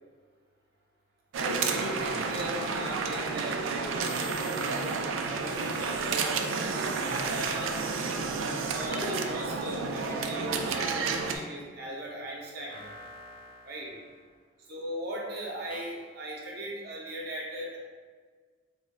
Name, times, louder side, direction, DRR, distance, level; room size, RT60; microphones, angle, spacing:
voice 1, 1.3-4.1 5.3-6.4 7.3-7.7 8.6-12.9 13.6-13.9 14.7-17.8, right 1 dB, 50° right, -2 dB, 0.8 m, -38 dB
sound 1, 1.3-11.4, right 4 dB, 80° right, 0.3 m, -31 dB
sound 2, 4.0-5.1 5.3-8.1 8.6-9.3 9.7-10.4 12.7-14.2 15.7-16.0, equal, 25° left, 0.4 m, -44 dB
3.0 x 2.4 x 4.1 m, 1.5 s
head